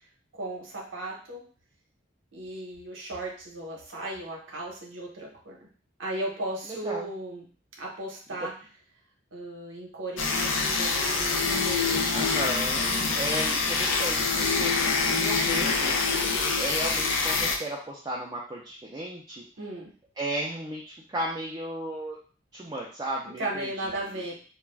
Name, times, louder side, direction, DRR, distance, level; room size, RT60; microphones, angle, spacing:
voice 1, 0.3-1.4 2.3-5.6 6.0-7.5 7.8-8.5 9.3-12.4 12.8-13.2 19.6-19.9 23.3-24.3, right 1 dB, 80° right, -2 dB, 0.7 m, -36 dB
sound 1, 10.2-17.6, left 4 dB, 85° left, 0.4 m, -25 dB
voice 2, 12.1-19.4 20.2-22.2 22.5-23.7, right 1 dB, 20° right, -4 dB, 0.4 m, -35 dB
2.3 x 2.1 x 3.2 m, 0.40 s
head